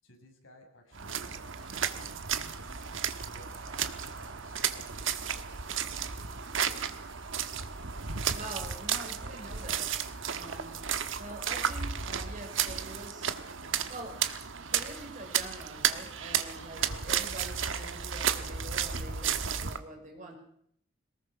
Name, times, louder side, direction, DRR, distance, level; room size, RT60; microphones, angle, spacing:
voice 1, 0.0-6.2, equal, 80° left, 2 dB, 6.3 m, -57 dB
sound 1, 0.9-19.8, right 8 dB, 70° right, 1.3 m, -33 dB
sound 2, 1.6-9.9, right 1 dB, 20° right, 5.2 m, -57 dB
voice 2, 8.3-9.9 10.3-13.4 13.7-14.2 14.5-20.4, right 2 dB, 40° right, 2 dB, 5.6 m, -45 dB
22.5 x 20.0 x 6.1 m, 0.69 s
head